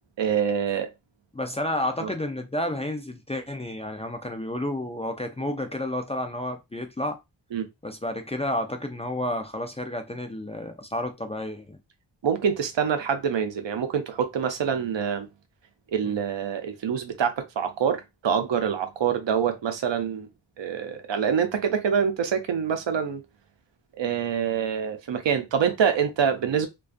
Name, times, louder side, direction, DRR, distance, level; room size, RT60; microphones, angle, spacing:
voice 1, 0.2-0.9 2.0-2.1 7.5-7.7 12.2-15.3 15.9-20.3 20.6-23.2 23.9-26.7, right 7 dB, 80° right, 0.6 m, -25 dB
voice 2, 1.3-7.2 7.8-11.8 16.0-16.2, left 1 dB, 15° left, 0.3 m, -31 dB
2.3 x 2.3 x 2.4 m
wide cardioid pair, 70°, 44 cm